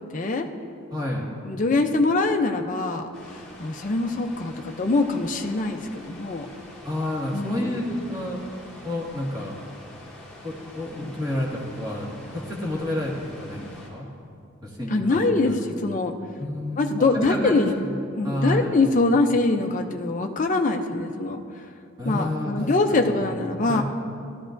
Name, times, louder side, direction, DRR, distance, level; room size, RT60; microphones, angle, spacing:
voice 1, 0.1-0.5 1.4-3.1 3.6-6.5 7.3-7.8 14.9-16.1 16.8-17.8 18.2-21.7 22.0-23.8, left 3 dB, 35° left, 4 dB, 0.5 m, -23 dB
voice 2, 0.9-1.3 6.8-8.4 8.8-9.5 10.4-14.1 14.6-15.6 16.4-17.9 18.2-18.8 22.0-23.3 23.7-23.8, left 1 dB, 20° right, -4 dB, 1.8 m, -30 dB
sound 1, 3.1-13.9, left 1 dB, 5° left, 2.2 m, -45 dB
15.5 x 12.0 x 2.6 m, 2.4 s
head